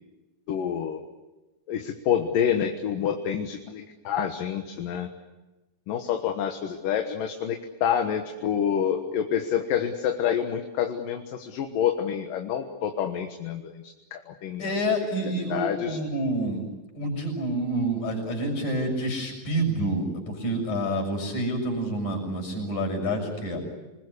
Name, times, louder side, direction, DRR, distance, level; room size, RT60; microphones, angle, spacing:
voice 1, 0.5-1.0 1.7-5.1 5.9-14.7 15.5-16.0, left 8 dB, 75° left, 5 dB, 3.0 m, -28 dB
voice 2, 14.6-16.6 16.9-23.6, right 1 dB, 60° left, 3 dB, 8.2 m, -28 dB
28.0 x 20.5 x 9.9 m, 1.1 s
omnidirectional pair, 4.0 m